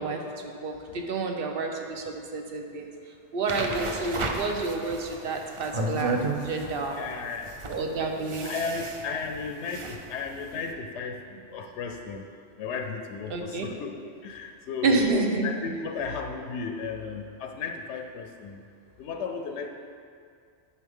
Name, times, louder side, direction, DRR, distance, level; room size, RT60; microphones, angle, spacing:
voice 1, 0.0-2.9 3.3-7.0 7.7-8.5 13.3-13.7 14.8-15.5, right 3 dB, 60° right, 3 dB, 1.0 m, -29 dB
sound 1, 3.5-10.7, right 2 dB, 40° right, 0.4 m, -33 dB
voice 2, 6.6-7.6 8.4-11.3 11.5-12.3 12.6-15.1 15.4-18.6 19.0-19.7, left 4 dB, 85° left, 4 dB, 0.9 m, -35 dB
9.4 x 6.1 x 3.6 m, 2.3 s
omnidirectional pair, 1.1 m